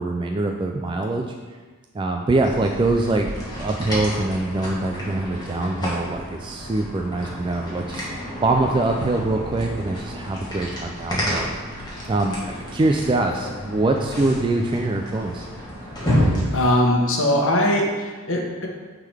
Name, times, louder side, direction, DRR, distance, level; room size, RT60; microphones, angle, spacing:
voice 1, 0.0-1.3 1.9-3.3 3.6-8.1 8.4-11.5 12.1-15.5, right 2 dB, 20° right, 2 dB, 0.3 m, -23 dB
sound 1, 2.4-16.7, equal, 20° left, 1.6 m, -30 dB
voice 2, 16.5-18.7, left 1 dB, 65° left, 0 dB, 1.1 m, -20 dB
9.2 x 3.8 x 3.4 m, 1.4 s
head